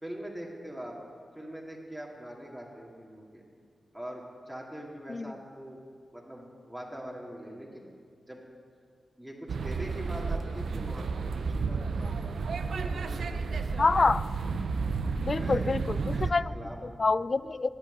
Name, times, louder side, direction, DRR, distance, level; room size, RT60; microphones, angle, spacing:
voice 1, 0.0-1.0 1.3-3.4 3.9-5.8 6.1-7.9 8.3-8.4 9.2-12.1 12.7-13.6 15.3-15.8 16.1-17.0, equal, 5° right, -3 dB, 2.3 m, -43 dB
sound 1, 9.5-16.3, right 4 dB, 80° right, 0.6 m, -31 dB
voice 2, 13.8-14.2 15.2-16.5 17.0-17.7, left 3 dB, 50° left, 17 dB, 0.3 m, -26 dB
9.7 x 8.9 x 9.2 m, 2.1 s
cardioid pair, 50°, 0 cm